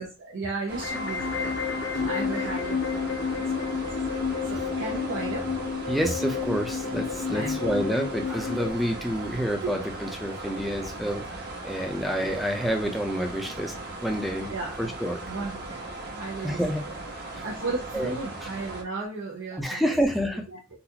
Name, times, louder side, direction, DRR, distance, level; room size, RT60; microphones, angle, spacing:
voice 1, 0.0-3.7 4.5-5.5 7.3-7.7 9.6-9.8 11.9-12.1 14.5-14.7 15.3-15.8 16.1-16.6 17.4-20.0 20.5-20.6, right 3 dB, 75° right, -3 dB, 0.8 m, -35 dB
sound 1, 0.7-8.7, left 6 dB, 65° left, 0.5 m, -30 dB
sound 2, 0.7-18.8, right 2 dB, 50° right, 1.1 m, -38 dB
voice 2, 5.9-13.7 14.0-15.2 16.4-16.8 17.3-17.4 17.9-18.1 19.5-20.5, equal, ahead, 3 dB, 0.5 m, -28 dB
4.0 x 2.4 x 2.8 m, 0.29 s
head